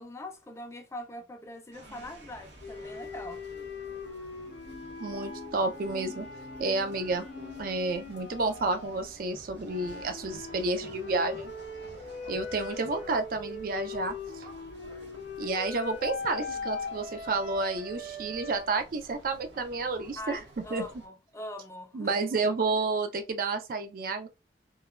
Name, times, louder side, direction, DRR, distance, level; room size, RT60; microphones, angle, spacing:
voice 1, 0.0-3.4 18.3-18.5 20.2-22.2, left 1 dB, 15° left, 0.4 m, -42 dB
sound 1, 1.7-21.1, right 1 dB, 80° right, 0.9 m, -51 dB
sound 2, 2.6-9.2 9.7-18.7, left 4 dB, 70° left, 0.6 m, -41 dB
sound 3, 4.6-8.4, left 2 dB, 20° right, 0.7 m, -46 dB
voice 2, 5.0-6.3 6.6-7.3 7.6-11.5 12.3-14.4 15.4-20.4 20.7-20.9 21.9-24.3, right 3 dB, 50° right, 0.4 m, -30 dB
3.0 x 2.2 x 2.3 m
head